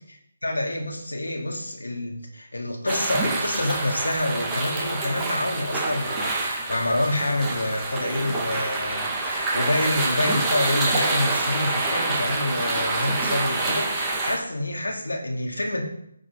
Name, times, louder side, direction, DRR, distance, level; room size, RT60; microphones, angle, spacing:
voice 1, 0.4-15.8, left 1 dB, 90° left, 2 dB, 2.2 m, -27 dB
sound 1, 2.9-14.4, right 2 dB, 15° right, 1.6 m, -27 dB
9.6 x 5.2 x 4.8 m, 0.73 s
figure-of-eight pair, 150°, 0 cm